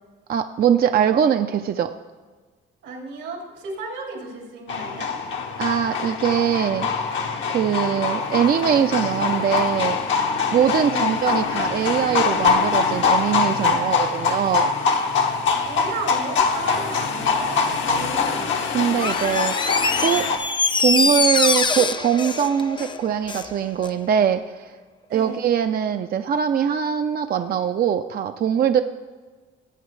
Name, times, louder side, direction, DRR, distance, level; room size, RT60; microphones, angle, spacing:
voice 1, 0.3-1.9 5.6-6.9 7.5-10.0 10.5-14.7 18.7-20.3 20.8-24.7 25.1-28.8, right 8 dB, 50° right, 8 dB, 0.5 m, -22 dB
voice 2, 2.8-5.1 10.8-11.2 15.6-18.6 25.1-25.4, right 3 dB, 90° right, -1 dB, 3.0 m, -34 dB
sound 1, 4.7-20.4, left 5 dB, 70° left, 1.1 m, -23 dB
Door, 18.9-23.5 23.8-23.9, left 4 dB, 25° left, 0.5 m, -23 dB
17.5 x 8.1 x 3.2 m, 1.4 s
cardioid pair, 90°, 20 cm